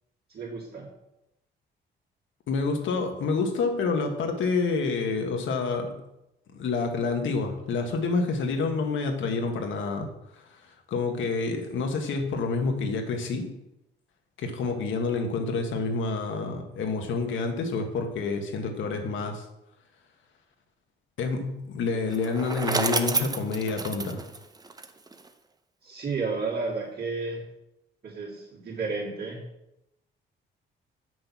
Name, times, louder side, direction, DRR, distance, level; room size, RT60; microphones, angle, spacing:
voice 1, 0.3-0.9 25.8-27.4 28.0-29.4, right 4 dB, 50° right, -8 dB, 3.1 m, -32 dB
voice 2, 2.5-6.0 6.5-13.6 14.4-19.5 21.2-24.2, left 4 dB, 75° left, 4 dB, 1.6 m, -28 dB
Bicycle, 22.1-25.3, right 3 dB, 20° right, 0.8 m, -30 dB
7.7 x 6.3 x 6.0 m, 0.87 s
cardioid pair, 90°, 20 cm